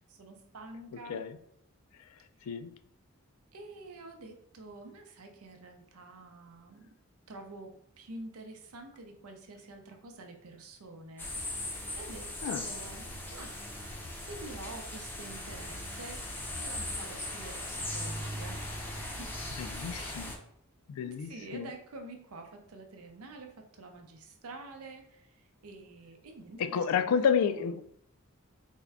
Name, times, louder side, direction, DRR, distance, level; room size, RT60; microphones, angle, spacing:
voice 1, 0.0-1.2 2.4-2.6 3.5-6.9 7.3-13.6 14.2-16.3 16.5-18.6 19.0-19.3 19.9-20.2 21.0-27.1 27.4-27.7, right 2 dB, 85° right, 0.6 m, -48 dB
sound 1, 11.2-20.4, left 1 dB, 10° left, 0.5 m, -39 dB
voice 2, 19.6-20.3 20.9-21.7 26.6-27.8, left 7 dB, 80° left, 0.3 m, -30 dB
3.5 x 2.2 x 3.4 m
head